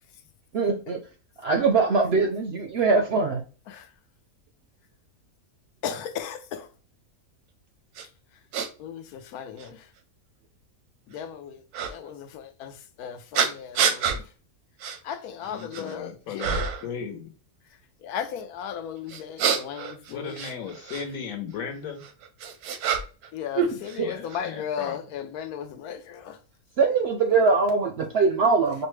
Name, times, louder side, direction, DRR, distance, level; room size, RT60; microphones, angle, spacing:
voice 1, 0.5-1.0 1.4-3.4 24.0-24.1 26.8-28.9, right 4 dB, 65° right, 0.6 m, -22 dB
voice 2, 5.8-6.7 8.8-9.9 11.1-14.3 15.0-16.6 18.0-20.4 23.3-26.4, left 8 dB, 90° left, 1.1 m, -36 dB
sound 1, 8.0-8.1 8.5-8.7 9.6-9.7 11.7-11.9 13.3-14.2 14.8-15.0 15.4-15.9 16.4-16.9 19.1-21.1 22.0-23.3 23.5-24.4, right 6 dB, 90° right, 1.2 m, -27 dB
voice 3, 15.5-17.2 20.1-22.0 23.9-25.0, left 6 dB, 70° left, 1.2 m, -36 dB
5.0 x 2.1 x 3.1 m
omnidirectional pair, 1.5 m